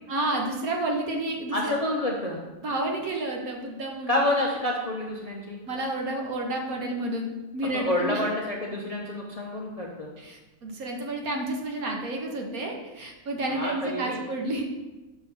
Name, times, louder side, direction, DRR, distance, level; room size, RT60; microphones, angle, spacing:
voice 1, 0.1-1.8 2.6-4.2 5.7-8.2 10.2-14.6, right 1 dB, 65° right, 1 dB, 1.3 m, -30 dB
voice 2, 1.5-2.4 4.1-5.6 7.7-10.1 13.5-14.2, left 1 dB, 75° left, -2 dB, 0.3 m, -28 dB
6.5 x 3.3 x 5.9 m, 1.1 s
omnidirectional pair, 1.7 m